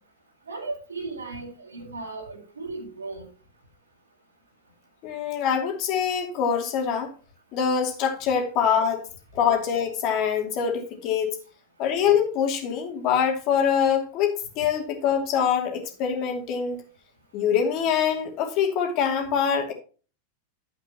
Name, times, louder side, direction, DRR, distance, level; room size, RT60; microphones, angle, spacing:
voice 1, 0.5-3.3, right 3 dB, 75° right, 4.3 m, -36 dB
voice 2, 5.0-7.1 7.5-9.1 9.3-11.4 11.8-16.8 17.3-19.7, left 7 dB, 40° left, 2.8 m, -24 dB
12.0 x 8.3 x 3.0 m
figure-of-eight pair, 90°, 0 cm